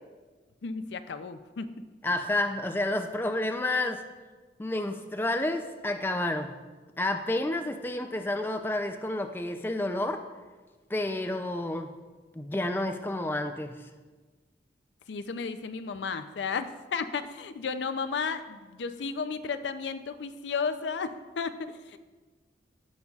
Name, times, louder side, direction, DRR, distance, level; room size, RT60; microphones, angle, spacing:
voice 1, 0.6-1.9 15.1-22.0, left 5 dB, 90° left, 10 dB, 0.5 m, -33 dB
voice 2, 2.0-4.0 4.6-6.5 7.0-10.2 10.9-11.9 12.4-13.8, left 1 dB, 10° left, 7 dB, 0.4 m, -30 dB
15.5 x 5.3 x 2.4 m, 1.3 s
head